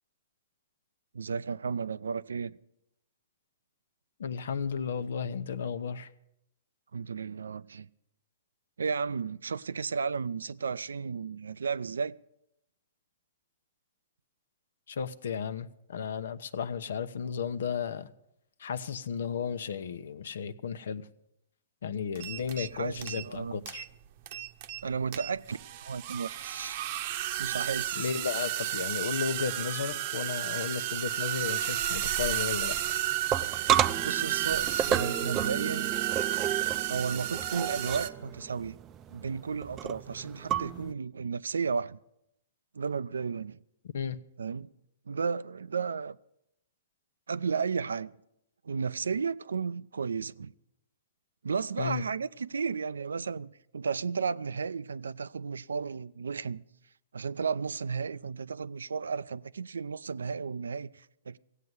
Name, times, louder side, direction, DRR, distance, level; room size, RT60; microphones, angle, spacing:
voice 1, 1.1-2.6 6.9-7.9 8.8-12.1 22.6-23.6 24.8-26.8 27.4-28.1 34.0-35.9 36.9-38.7 39.1-42.0 42.7-43.6 44.4-44.7 45.1-46.2 47.3-48.1 48.6-50.5 51.4-56.6 57.1-61.4, right 5 dB, 85° right, 0.5 m, -33 dB
voice 2, 4.2-6.1 14.9-18.1 18.6-21.1 21.8-23.9 28.0-32.8 43.9-44.2 51.8-52.0, left 7 dB, 70° left, 0.9 m, -34 dB
sound 1, 22.1-22.7 23.0-23.4 23.7-23.9 24.3-24.8 25.1-38.1, right 13 dB, 50° right, 0.9 m, -32 dB
sound 2, 32.7-40.9, right 10 dB, 25° right, 0.5 m, -32 dB
16.0 x 8.3 x 9.4 m
hypercardioid pair, 125°, 0 cm